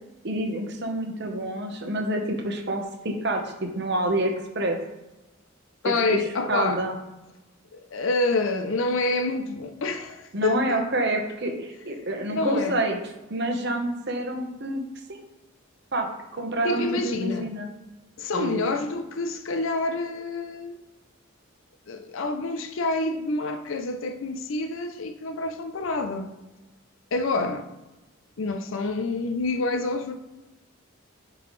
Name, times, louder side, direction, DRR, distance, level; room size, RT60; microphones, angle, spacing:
voice 1, 0.2-4.8 5.8-6.2 6.5-7.0 10.3-13.0 13.3-14.8 15.9-16.1 16.3-17.7 18.3-18.6 27.4-27.5, right 1 dB, 55° right, 1.0 m, -27 dB
voice 2, 5.8-6.8 7.7-10.6 12.3-12.8 16.6-17.5 18.2-20.8 21.9-26.3 27.1-27.7 28.4-30.1, left 3 dB, 70° left, 0.5 m, -27 dB
9.3 x 3.9 x 3.2 m
head